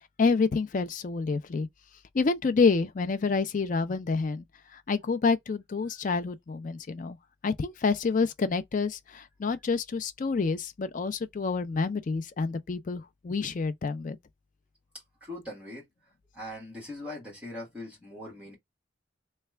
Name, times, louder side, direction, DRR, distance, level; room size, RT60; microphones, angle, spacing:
voice 1, 0.2-1.7 2.1-4.5 4.7-7.2 7.4-14.2, left 4 dB, 40° left, 0.4 m, -28 dB
voice 2, 15.2-15.9 16.3-18.6, left 1 dB, 5° right, 1.5 m, -41 dB
3.2 x 2.2 x 3.2 m
head